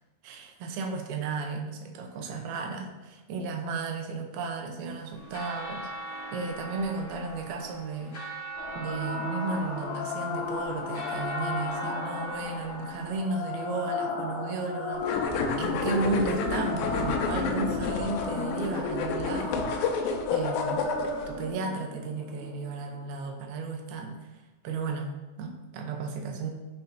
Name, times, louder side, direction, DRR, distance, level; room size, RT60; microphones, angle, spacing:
voice 1, 0.2-5.9 6.3-8.2 8.7-15.1 15.6-19.6 20.3-20.8 21.3-24.2 24.6-26.5, right 4 dB, 75° right, 3 dB, 2.6 m, -34 dB
sound 1, 5.1-13.1, right 2 dB, 40° left, 1.8 m, -40 dB
sound 2, 8.6-23.6, left 3 dB, 65° left, 2.8 m, -35 dB
sound 3, 15.0-21.3, left 4 dB, 80° left, 3.0 m, -30 dB
14.5 x 5.7 x 2.8 m, 1.1 s
omnidirectional pair, 5.0 m